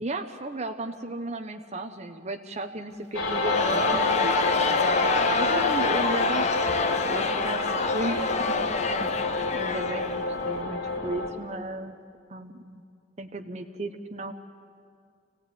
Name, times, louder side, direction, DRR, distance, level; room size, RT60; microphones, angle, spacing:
voice 1, 0.0-4.8 5.3-6.5 6.9-7.6 7.9-8.6 9.0-12.0 12.3-12.8 13.2-14.3, right 2 dB, 35° right, 5 dB, 0.9 m, -35 dB
sound 1, 3.1-11.3, left 2 dB, 85° left, 3.3 m, -28 dB
Crowd, 3.3-10.6, left 4 dB, 35° left, 0.7 m, -28 dB
26.0 x 16.5 x 9.3 m, 2.3 s
head